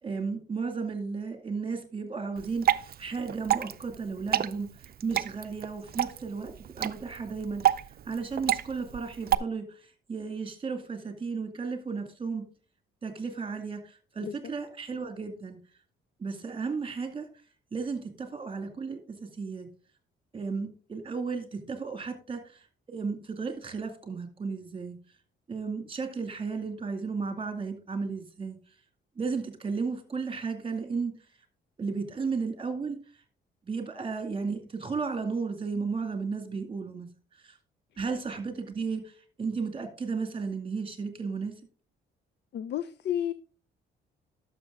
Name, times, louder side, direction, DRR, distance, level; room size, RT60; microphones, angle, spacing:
voice 1, 0.0-4.7 5.0-7.8 8.1-9.6 10.1-12.4 13.0-13.8 14.2-15.6 16.2-17.3 17.7-19.0 19.4-19.7 20.3-22.4 22.9-25.0 25.5-28.6 29.2-31.1 31.8-33.0 33.7-37.1 38.0-39.0 39.4-41.5, right 4 dB, 25° right, 2.3 m, -34 dB
Water / Drip, 2.4-9.4, right 11 dB, 50° right, 0.5 m, -30 dB
voice 2, 14.2-14.5 42.5-43.3, left 10 dB, 60° left, 0.5 m, -32 dB
12.0 x 6.6 x 3.7 m
cardioid pair, 90°, 20 cm